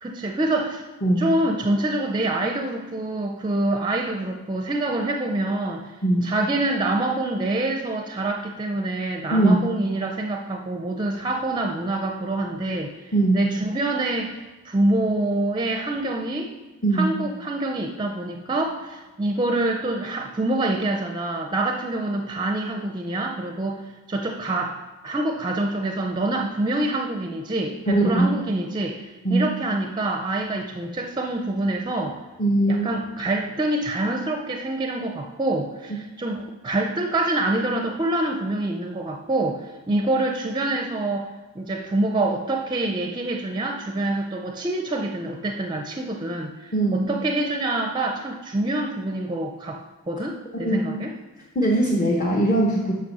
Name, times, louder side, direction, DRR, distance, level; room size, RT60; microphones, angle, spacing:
voice 1, 0.0-0.8 1.2-6.0 6.2-12.9 13.3-16.5 16.9-23.8 24.1-24.8 25.0-32.2 32.7-49.8 50.1-51.1, right 2 dB, 20° right, 3 dB, 0.5 m, -26 dB
voice 2, 9.3-9.6 13.1-13.4 16.8-17.0 27.9-28.3 29.2-29.5 32.4-32.9 46.7-47.1 50.5-50.8 51.5-52.9, right 2 dB, 35° left, -2 dB, 0.8 m, -20 dB
7.6 x 5.8 x 5.4 m, 1.2 s
head